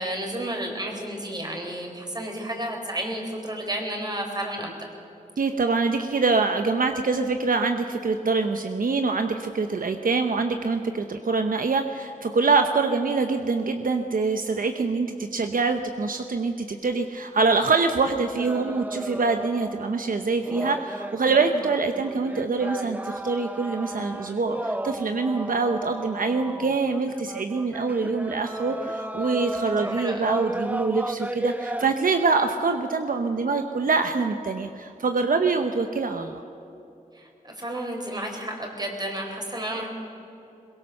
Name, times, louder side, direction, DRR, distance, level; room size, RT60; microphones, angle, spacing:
voice 1, 0.0-4.8 29.8-30.3 37.1-39.9, right 1 dB, 30° right, 2 dB, 4.4 m, -32 dB
voice 2, 5.4-36.4, right 4 dB, 75° right, 6 dB, 1.0 m, -25 dB
sound 1, 18.4-31.9, right 1 dB, 10° right, 0.6 m, -34 dB
22.5 x 22.0 x 6.7 m, 2.8 s
wide cardioid pair, 105°, 15 cm